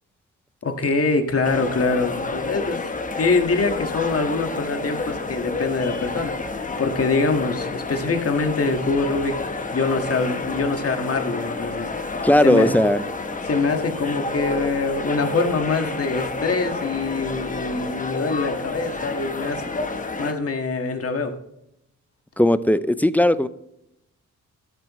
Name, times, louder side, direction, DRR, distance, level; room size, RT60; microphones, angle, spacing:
voice 1, 0.6-9.4 9.7-12.7 13.4-19.6 20.2-21.3, left 3 dB, 45° left, 5 dB, 1.7 m, -24 dB
sound 1, 1.4-20.3, left 3 dB, 25° left, 1.1 m, -30 dB
voice 2, 12.2-13.0 22.4-23.5, left 1 dB, 5° left, 14 dB, 0.5 m, -17 dB
12.5 x 11.0 x 3.1 m, 0.81 s
cardioid pair, 110°, 32 cm